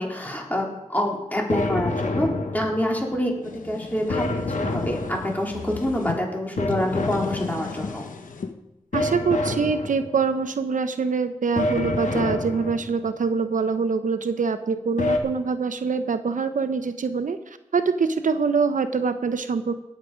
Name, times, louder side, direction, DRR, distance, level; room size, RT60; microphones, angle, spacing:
voice 1, 0.0-2.3 2.5-8.0, left 1 dB, 10° left, -1 dB, 3.9 m, -27 dB
sound 1, 1.5-3.1 4.1-5.6 6.6-7.9 8.9-10.3 11.6-13.1 15.0-15.2, left 2 dB, 70° left, 1.5 m, -28 dB
sound 2, 3.1-6.2 6.6-8.5, left 4 dB, 85° left, 1.0 m, -36 dB
voice 2, 8.9-19.8, right 5 dB, 80° right, 10 dB, 0.7 m, -24 dB
18.5 x 7.6 x 5.1 m, 0.93 s
cardioid pair, 55°, 13 cm